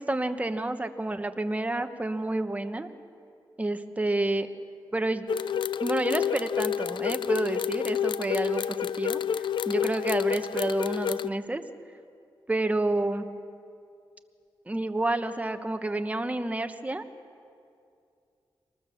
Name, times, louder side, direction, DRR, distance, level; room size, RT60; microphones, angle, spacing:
voice 1, 0.0-2.9 3.6-4.5 4.9-5.3 5.8-8.7 9.0-9.2 9.7-11.6 12.5-13.2 14.7-17.0, right 2 dB, 15° right, 8 dB, 1.2 m, -29 dB
sound 1, 5.3-11.3, left 9 dB, 65° left, 0.4 m, -29 dB
25.0 x 19.5 x 7.2 m, 2.5 s
cardioid pair, 90°, 9 cm